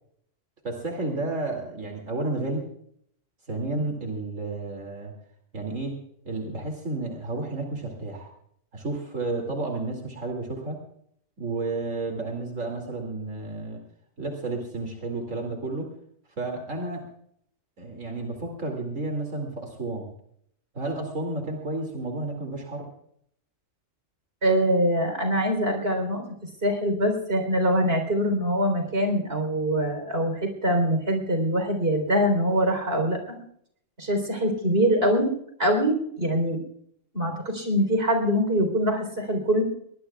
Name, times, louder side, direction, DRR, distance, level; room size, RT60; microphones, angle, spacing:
voice 1, 0.6-2.6 3.5-5.1 5.5-5.9 6.2-8.3 8.7-10.8 11.4-13.8 14.2-15.9 16.4-17.0 17.8-20.1 20.7-22.8, right 2 dB, 75° right, 2 dB, 3.0 m, -31 dB
voice 2, 24.4-26.2 26.6-33.4 34.0-35.3 35.6-36.6 37.1-39.6, equal, 50° right, 4 dB, 4.1 m, -23 dB
22.5 x 20.0 x 2.4 m, 0.67 s
omnidirectional pair, 1.3 m